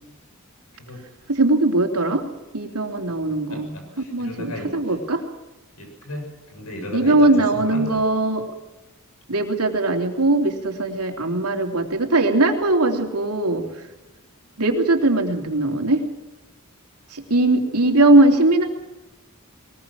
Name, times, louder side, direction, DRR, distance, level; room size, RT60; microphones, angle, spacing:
voice 1, 1.3-2.2 2.5-5.2 6.9-8.4 9.3-13.9 14.6-16.0 17.1-18.6, right 2 dB, 90° right, 3 dB, 3.1 m, -20 dB
voice 2, 3.5-4.7 5.8-8.0 13.7-13.8, left 1 dB, 85° left, 3 dB, 7.4 m, -34 dB
22.0 x 20.5 x 6.2 m, 1.0 s
head